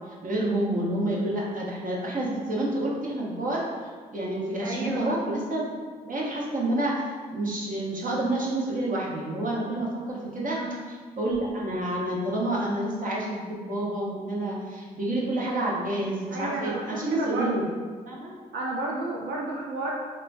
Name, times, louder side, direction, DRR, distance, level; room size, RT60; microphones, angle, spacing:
voice 1, 0.1-3.6 4.1-5.7 6.0-7.0 7.3-10.6 10.9-17.7 18.0-18.3, right 1 dB, 45° right, -4 dB, 1.0 m, -29 dB
voice 2, 4.6-5.2 10.5-10.9 16.3-17.7 18.5-19.9, right 2 dB, 60° right, -3 dB, 0.5 m, -32 dB
4.3 x 2.1 x 2.6 m, 1.5 s
hypercardioid pair, 45°, 20 cm